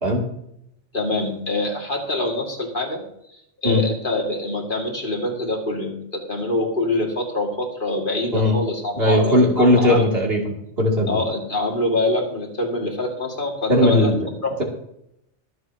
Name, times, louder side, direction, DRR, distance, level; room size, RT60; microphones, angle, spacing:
voice 1, 0.9-3.0 3.3-10.1 11.1-14.1 14.4-14.6, left 2 dB, 45° left, 1 dB, 2.5 m, -25 dB
voice 2, 8.9-11.2 13.7-14.2, left 1 dB, 55° right, -1 dB, 3.0 m, -18 dB
23.5 x 7.9 x 2.9 m, 0.76 s
omnidirectional pair, 1.2 m